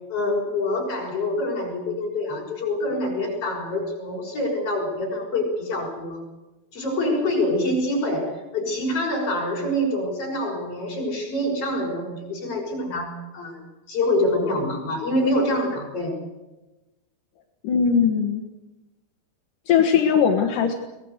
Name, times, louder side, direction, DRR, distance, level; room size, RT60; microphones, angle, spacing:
voice 1, 0.1-6.2 6.7-16.2, left 1 dB, 30° left, -1 dB, 7.0 m, -26 dB
voice 2, 17.6-18.4 19.7-20.7, left 7 dB, 60° left, 2 dB, 2.4 m, -19 dB
23.5 x 19.5 x 8.2 m, 1.1 s
omnidirectional pair, 5.5 m